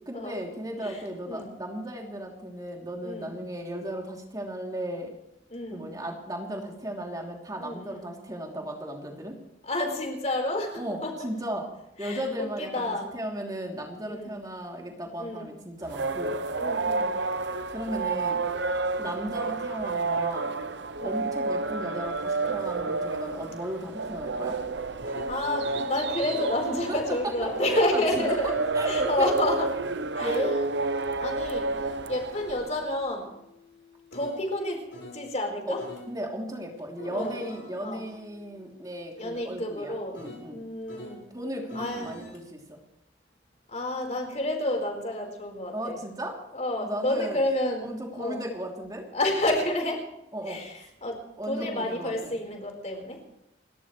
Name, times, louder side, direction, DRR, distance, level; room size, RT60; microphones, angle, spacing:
voice 1, 0.1-5.1 5.7-9.4 10.8-11.7 12.0-16.4 17.7-18.4 19.0-20.5 21.0-24.6 26.9-27.0 27.4-29.3 30.2-30.6 35.7-35.8 36.1-40.6 41.3-42.8 45.7-46.4 46.8-47.4 47.8-49.1 50.3-50.6 51.4-52.4, right 1 dB, 20° right, 0 dB, 3.1 m, -35 dB
voice 2, 0.8-1.5 3.0-3.3 5.5-5.9 7.6-8.1 9.6-11.1 12.0-13.1 14.0-14.4 15.2-15.5 16.6-17.1 19.0-19.1 21.0-21.2 25.2-28.5 28.9-29.7 30.1-30.3 30.9-33.3 34.1-34.8 35.1-35.8 37.1-37.4 37.8-38.1 39.2-40.2 40.5-41.2 41.7-42.2 43.7-46.0 46.5-48.4 49.1-50.0 50.5-51.2 51.5-53.2, left 1 dB, 35° left, 2 dB, 4.4 m, -30 dB
sound 1, 15.8-32.8, right 3 dB, 65° right, 0.8 m, -30 dB
sound 2, 24.1-26.5 27.1-35.3 35.8-36.1 36.8-41.2 41.7-42.4, left 1 dB, 80° left, 4.9 m, -48 dB
29.5 x 13.5 x 3.3 m, 0.86 s
head